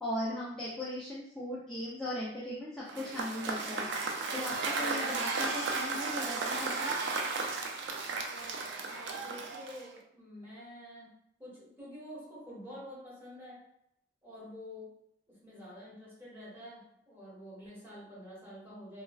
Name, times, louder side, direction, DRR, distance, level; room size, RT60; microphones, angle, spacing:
voice 1, 0.0-3.9 4.3-7.0, left 1 dB, 5° left, -9 dB, 0.4 m, -38 dB
Cheering / Applause / Crowd, 2.9-10.0, right 3 dB, 75° right, 0.4 m, -34 dB
voice 2, 8.8-11.1 11.4-13.6 14.2-14.9 15.3-19.0, equal, 15° right, -8 dB, 1.3 m, -48 dB
3.1 x 2.3 x 2.3 m, 0.78 s
head